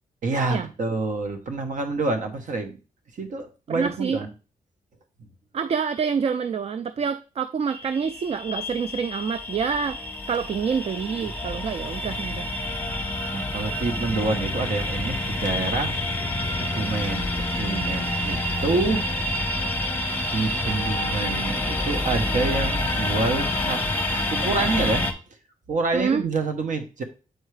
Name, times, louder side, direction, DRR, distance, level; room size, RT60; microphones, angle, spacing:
voice 1, 0.2-2.8 3.1-4.3 13.3-16.0 16.7-17.3 17.5-19.0 20.3-23.8 24.3-25.1 25.7-27.0, right 3 dB, 60° right, 6 dB, 1.1 m, -27 dB
voice 2, 3.7-4.2 5.5-12.5 25.9-26.2, right 6 dB, 45° right, 11 dB, 0.4 m, -27 dB
sound 1, 7.7-25.1, left 1 dB, 15° left, 1.0 m, -28 dB
8.0 x 4.6 x 3.2 m, 0.34 s
cardioid pair, 110°, 15 cm